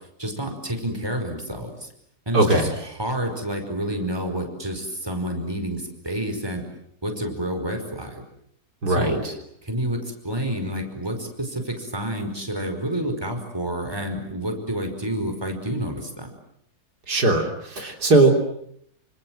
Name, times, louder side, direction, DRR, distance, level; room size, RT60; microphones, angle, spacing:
voice 1, 0.2-1.9 2.2-2.7 3.0-6.6 7.0-8.2 8.9-9.2 9.6-16.3, right 1 dB, 15° right, 5 dB, 5.1 m, -29 dB
voice 2, 2.3-2.7 8.8-9.3 17.1-18.3, right 2 dB, 75° right, 3 dB, 4.0 m, -19 dB
28.0 x 26.5 x 7.8 m, 0.71 s
omnidirectional pair, 1.7 m